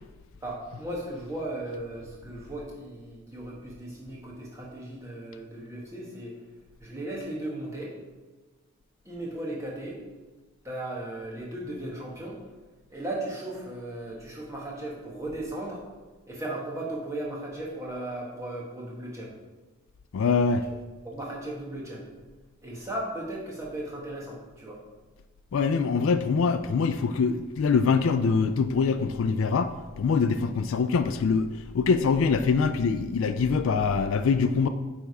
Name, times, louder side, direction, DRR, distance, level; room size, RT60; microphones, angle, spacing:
voice 1, 0.4-6.4 6.8-7.9 9.0-10.0 10.6-12.4 12.9-15.8 16.3-19.3 21.0-22.0 22.6-24.8, right 1 dB, 15° right, -4 dB, 1.3 m, -36 dB
voice 2, 20.1-20.6 25.5-31.5 31.7-34.7, left 5 dB, 60° left, 9 dB, 0.3 m, -24 dB
8.5 x 3.4 x 4.8 m, 1.2 s
head